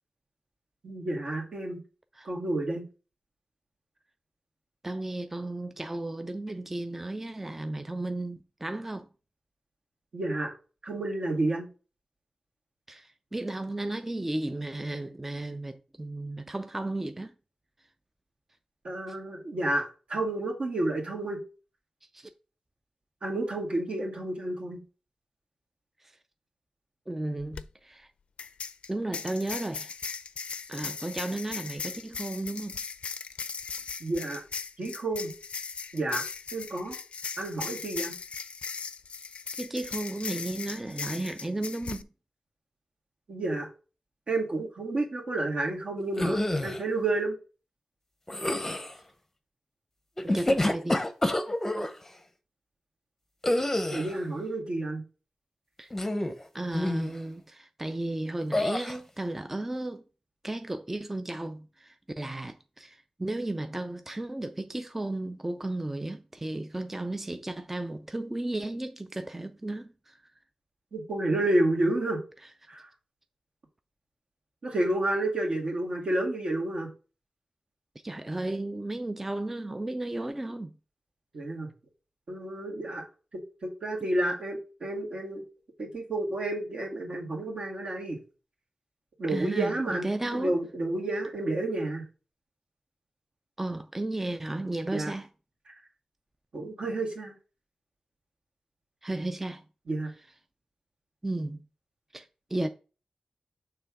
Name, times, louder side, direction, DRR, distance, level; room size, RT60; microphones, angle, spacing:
voice 1, 0.8-1.8 2.2-2.9 10.1-10.5 10.8-11.7 18.8-21.4 23.2-24.8 34.0-34.4 34.8-35.3 35.9-36.3 36.5-37.0 37.4-38.2 43.3-43.7 44.3-47.4 53.9-55.0 70.9-72.2 72.7-72.9 74.6-76.9 81.3-81.7 82.3-83.1 83.3-85.4 85.8-88.2 89.2-90.1 90.3-92.0 94.9-95.1 96.5-97.4 99.9-100.1, right 2 dB, 65° right, 1.9 m, -30 dB
voice 2, 4.8-9.1 12.9-17.3 19.1-19.2 22.1-22.3 26.0-26.1 27.1-28.1 28.9-29.9 30.7-32.8 39.5-42.1 50.2-51.0 55.8-55.9 56.5-60.0 60.4-70.2 78.0-80.7 89.3-90.5 93.6-95.3 99.0-99.6 101.2-101.6 102.1-102.7, right 2 dB, 15° right, 0.3 m, -34 dB
sound 1, 27.4-27.6 28.4-42.0, left 5 dB, 75° left, 0.4 m, -38 dB
sound 2, 46.1-46.8 48.3-48.9 50.2-51.9 53.4-54.2 55.9-56.4 56.7-57.1 58.5-59.0, left 1 dB, 15° left, 0.7 m, -27 dB
6.8 x 3.4 x 4.7 m
wide cardioid pair, 150°, 2 cm